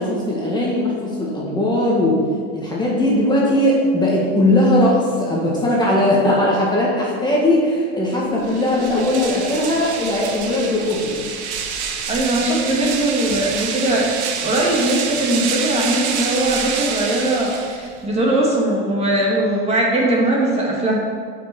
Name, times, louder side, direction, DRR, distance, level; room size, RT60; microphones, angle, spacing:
voice 1, 0.0-2.2 2.5-11.1, left 1 dB, 15° left, -5 dB, 1.7 m, -19 dB
sound 1, 8.4-18.0, right 6 dB, 90° right, 1.3 m, -27 dB
voice 2, 12.1-14.1 14.4-21.0, right 1 dB, 20° right, -3 dB, 2.1 m, -20 dB
8.7 x 5.8 x 7.0 m, 2.1 s
supercardioid pair, 135°, 33 cm